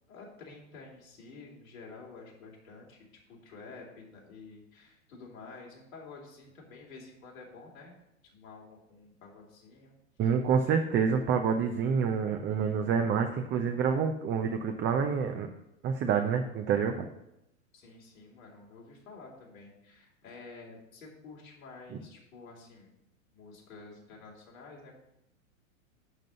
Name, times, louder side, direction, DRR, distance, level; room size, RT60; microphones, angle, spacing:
voice 1, 0.1-8.0 8.3-10.0 10.2-10.3 17.7-22.9 23.3-25.0, left 4 dB, 75° left, -2 dB, 3.6 m, -50 dB
voice 2, 10.2-15.5 15.8-17.1, right 6 dB, 25° right, 5 dB, 0.7 m, -27 dB
11.0 x 3.9 x 7.7 m, 0.83 s
hypercardioid pair, 105°, 41 cm